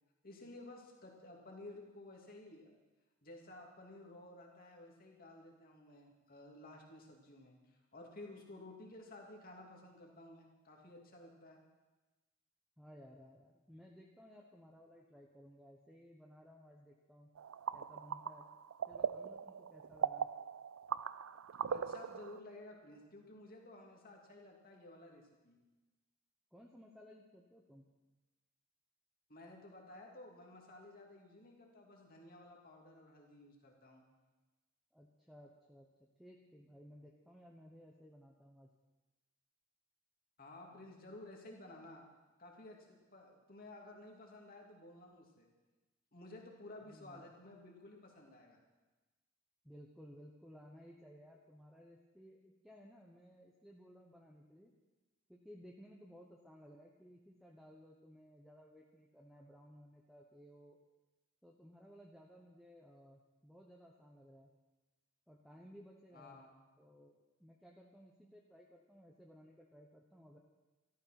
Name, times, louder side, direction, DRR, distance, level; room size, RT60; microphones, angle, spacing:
voice 1, 0.2-2.7 3.2-11.6 21.7-25.6 29.3-34.0 40.4-42.1 42.4-45.5 46.1-48.6 66.1-66.5, left 2 dB, 45° left, 0 dB, 2.7 m, -54 dB
voice 2, 12.8-17.3 17.7-18.4 18.9-20.3 26.5-27.9 34.9-35.9 36.2-38.7 46.8-47.3 49.6-54.7 55.3-60.8 61.4-64.5 65.3-66.4 66.8-67.1 67.4-70.4, equal, ahead, -2 dB, 1.1 m, -58 dB
sound 1, 17.4-22.4, right 7 dB, 75° right, 0.4 m, -40 dB
13.5 x 13.0 x 6.0 m, 1.2 s
head